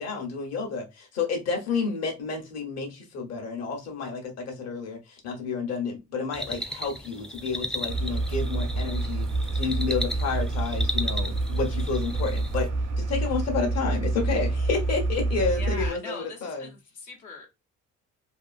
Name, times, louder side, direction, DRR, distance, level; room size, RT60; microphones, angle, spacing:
voice 1, 0.0-9.3 9.5-12.7 13.0-16.7, left 4 dB, 55° left, 1.0 m, -30 dB
sound 1, 6.3-12.7, equal, ahead, 0.3 m, -35 dB
sound 2, 7.9-15.9, right 2 dB, 80° right, 0.7 m, -28 dB
voice 2, 15.5-17.5, left 3 dB, 80° left, 1.0 m, -41 dB
2.8 x 2.4 x 2.4 m
cardioid pair, 90°, 30 cm